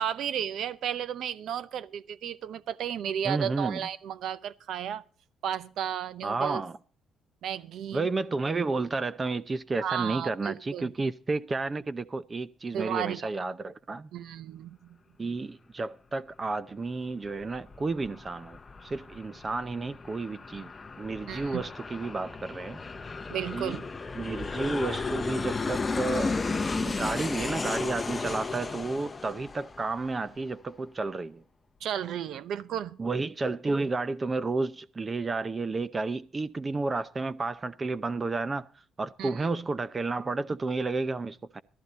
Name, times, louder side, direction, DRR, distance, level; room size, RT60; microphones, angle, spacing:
voice 1, 0.0-5.0 5.4-6.6 7.4-8.1 9.8-10.9 12.7-13.3 14.1-14.8 21.3-21.6 23.3-23.8 31.8-33.0 39.2-39.5, right 9 dB, 75° right, 0.8 m, -33 dB
voice 2, 3.2-3.8 6.2-6.8 7.9-14.1 15.2-20.7 21.0-22.8 23.5-23.8 24.1-26.3 26.7-31.4 33.0-41.6, right 3 dB, 30° right, 0.6 m, -31 dB
Aircraft, 17.2-30.4, left 4 dB, 25° left, 0.8 m, -34 dB
13.5 x 13.0 x 4.0 m
cardioid pair, 90°, 0 cm